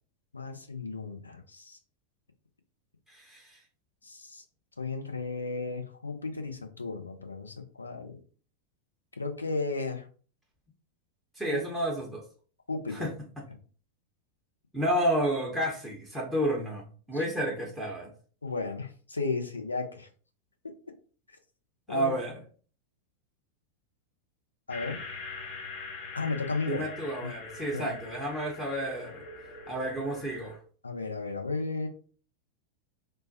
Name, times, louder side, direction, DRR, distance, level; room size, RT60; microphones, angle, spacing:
voice 1, 0.3-1.8 4.0-4.4 4.8-8.2 9.2-10.1 11.5-11.6 12.7-13.1 18.4-20.1 21.9-22.1 24.7-25.0 26.1-26.9 27.2-27.3 27.7-27.9 30.8-31.9, left 3 dB, 80° left, 5 dB, 0.5 m, -34 dB
voice 2, 3.1-3.6 11.4-12.2 12.9-13.1 14.7-18.1 21.9-22.4 26.7-29.2 29.7-30.6, right 1 dB, 5° right, -2 dB, 0.6 m, -31 dB
sound 1, 24.7-30.6, left 3 dB, 45° left, 0.7 m, -43 dB
3.2 x 2.1 x 2.6 m, 0.40 s
figure-of-eight pair, 90°, 0 cm